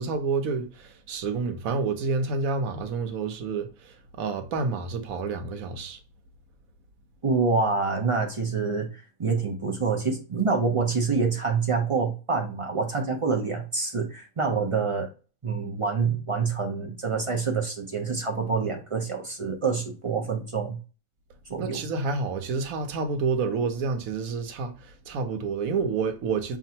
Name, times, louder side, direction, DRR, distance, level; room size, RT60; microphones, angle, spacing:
voice 1, 0.0-6.0 21.6-26.6, right 4 dB, 70° right, 1.1 m, -29 dB
voice 2, 7.2-15.1 15.4-20.8 21.5-21.8, right 4 dB, 40° right, 0.4 m, -26 dB
5.8 x 2.5 x 2.8 m
omnidirectional pair, 1.6 m